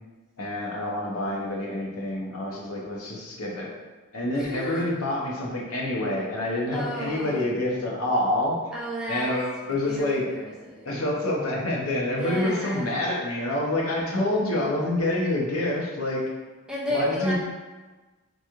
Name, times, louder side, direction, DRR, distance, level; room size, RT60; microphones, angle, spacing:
voice 1, 0.4-3.7 4.1-8.5 9.1-10.2 10.8-16.2 16.9-17.3, left 1 dB, 70° left, -3 dB, 0.8 m, -27 dB
voice 2, 4.3-4.9 6.7-7.4 8.7-9.3 9.6-10.9 12.2-13.0 16.7-17.3, equal, 5° right, -6 dB, 0.5 m, -32 dB
3.9 x 3.0 x 2.4 m, 1.3 s
head